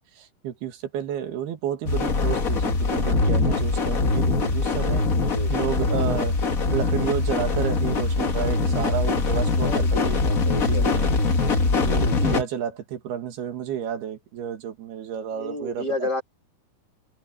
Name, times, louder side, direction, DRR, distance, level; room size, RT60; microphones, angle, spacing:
voice 1, 0.0-6.4 6.7-10.2 10.6-11.1 11.8-16.2, right 9 dB, 90° right, 4.0 m, -31 dB
sound 1, 1.8-12.4, left 3 dB, 75° left, 0.7 m, -22 dB
voice 2, 4.8-5.5 9.6-11.1 15.4-16.2, left 1 dB, 30° left, 2.7 m, -32 dB
omnidirectional pair, 4.4 m